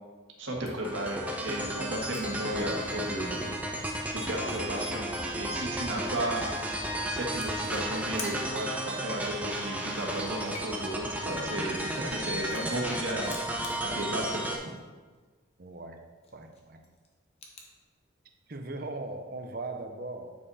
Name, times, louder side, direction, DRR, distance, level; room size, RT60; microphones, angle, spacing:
voice 1, 0.4-3.4 3.7-13.4 13.8-14.6, right 1 dB, 75° right, -1 dB, 1.6 m, -34 dB
sound 1, 0.6-8.3, equal, 50° left, 1.9 m, -50 dB
sound 2, 0.7-0.9 1.4-2.4 2.7-3.1 3.4-3.5 3.7-4.3 5.3-5.4 5.7-6.6 7.3-8.4 8.7-9.0 9.2-9.9 10.3-13.0 13.2-14.9 15.1-15.2 15.6-15.9 16.2-17.7, left 3 dB, 30° left, 1.0 m, -47 dB
sound 3, 0.8-14.6, right 1 dB, 10° right, 0.6 m, -34 dB
voice 2, 15.6-16.0 16.3-16.9 18.5-20.4, right 2 dB, 45° right, 5 dB, 0.7 m, -39 dB
9.1 x 5.5 x 4.1 m, 1.4 s
head